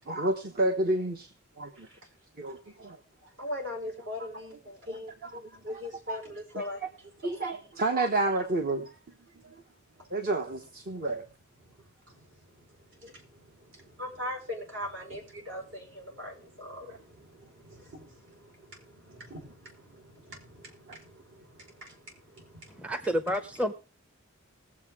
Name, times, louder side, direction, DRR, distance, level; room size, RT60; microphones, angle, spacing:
voice 1, 0.1-1.3 1.6-1.9 2.4-3.0 4.9-5.8 6.1-6.2 6.5-6.7 7.2-8.9 9.4-9.6 10.1-11.2 13.0-13.1 16.9-17.0 20.9-21.0, right 2 dB, 45° right, 1.1 m, -30 dB
voice 2, 3.2-5.1 5.5-7.5 10.0-10.1 10.9-11.1 11.6-23.0, left 1 dB, 65° right, 4.8 m, -42 dB
voice 3, 22.8-23.7, equal, 5° right, 0.6 m, -29 dB
20.0 x 7.6 x 3.6 m
head